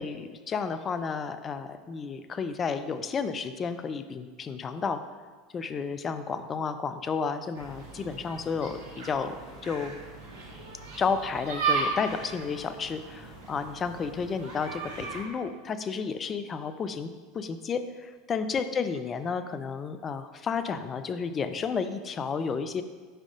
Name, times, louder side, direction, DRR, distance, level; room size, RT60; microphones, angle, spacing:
voice 1, 0.0-5.0 5.5-10.0 11.0-17.1 17.3-22.8, left 5 dB, 30° left, 10 dB, 0.4 m, -32 dB
sound 1, 7.6-15.2, right 5 dB, 60° right, 1.4 m, -36 dB
5.5 x 4.8 x 3.7 m, 1.5 s
hypercardioid pair, 80°, 0 cm